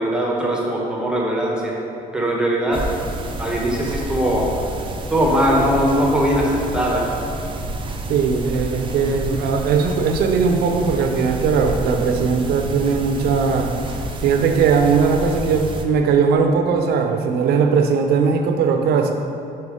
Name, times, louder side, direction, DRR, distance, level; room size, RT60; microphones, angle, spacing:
voice 1, 0.0-1.7 2.1-2.8 3.4-4.5 5.1-7.2, equal, 5° right, -3 dB, 1.0 m, -20 dB
sound 1, 2.7-15.8, right 2 dB, 30° right, 0.6 m, -30 dB
voice 2, 8.1-13.7 14.2-19.1, right 5 dB, 70° right, 4 dB, 0.7 m, -19 dB
5.5 x 4.6 x 4.8 m, 2.7 s
cardioid pair, 110°, 17 cm